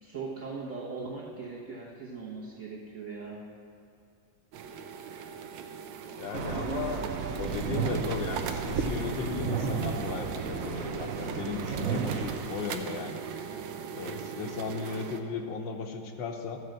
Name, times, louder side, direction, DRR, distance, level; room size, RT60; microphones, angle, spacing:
voice 1, 0.0-3.4, right 4 dB, 45° right, -6 dB, 1.4 m, -39 dB
sound 1, 4.5-15.2, right 7 dB, 80° right, 1.4 m, -39 dB
voice 2, 6.2-7.0 7.4-13.2 13.9-16.6, left 5 dB, 80° left, 3 dB, 1.4 m, -36 dB
sound 2, 6.3-12.4, right 6 dB, 60° right, 0.9 m, -33 dB
13.5 x 4.7 x 7.8 m, 2.5 s
omnidirectional pair, 2.0 m